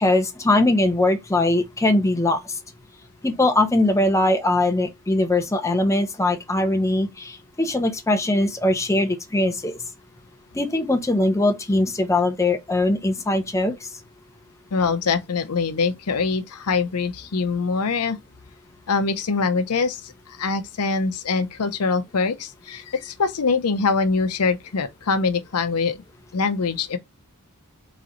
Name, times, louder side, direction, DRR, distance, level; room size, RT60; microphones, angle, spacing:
voice 1, 0.0-2.4 3.2-9.8 10.5-13.7, left 2 dB, 15° left, 0.7 m, -21 dB
voice 2, 14.7-18.2 18.9-26.0 26.3-27.0, left 4 dB, 85° left, 0.7 m, -23 dB
3.9 x 3.1 x 3.8 m
head